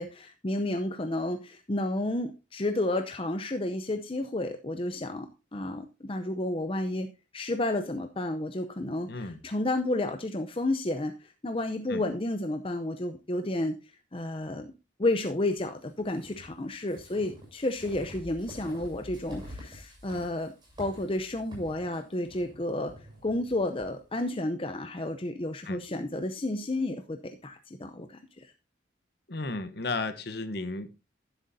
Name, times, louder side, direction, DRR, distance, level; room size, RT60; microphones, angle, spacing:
voice 1, 0.0-7.1 7.3-13.7 14.1-14.7 15.0-20.5 20.8-22.9 23.2-28.5, left 1 dB, 25° left, 7 dB, 0.6 m, -31 dB
voice 2, 9.1-9.4 11.9-12.0 25.7-25.8 29.3-31.0, left 3 dB, 50° left, 11 dB, 1.0 m, -34 dB
sound 1, 16.0-23.9, equal, 20° right, 6.8 m, -47 dB
sound 2, 21.3-24.4, equal, 55° right, 4.7 m, -57 dB
11.5 x 10.0 x 2.7 m, 0.28 s
head